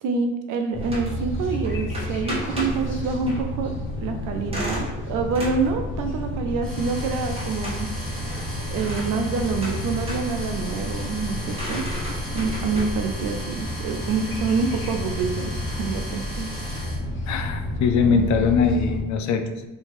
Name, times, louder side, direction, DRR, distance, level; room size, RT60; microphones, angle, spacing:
voice 1, 0.0-7.9 8.7-11.9 12.3-16.5 18.0-18.3, right 4 dB, 90° right, 5 dB, 0.6 m, -27 dB
sound 1, 0.7-19.0, left 1 dB, 40° left, 1.1 m, -31 dB
sound 2, 0.8-15.3, equal, 20° right, 1.4 m, -36 dB
sound 3, 6.6-17.0, equal, ahead, 1.0 m, -38 dB
voice 2, 17.3-19.7, left 5 dB, 70° left, 6 dB, 0.5 m, -22 dB
2.9 x 2.8 x 4.4 m, 1.1 s
cardioid pair, 90°, 30 cm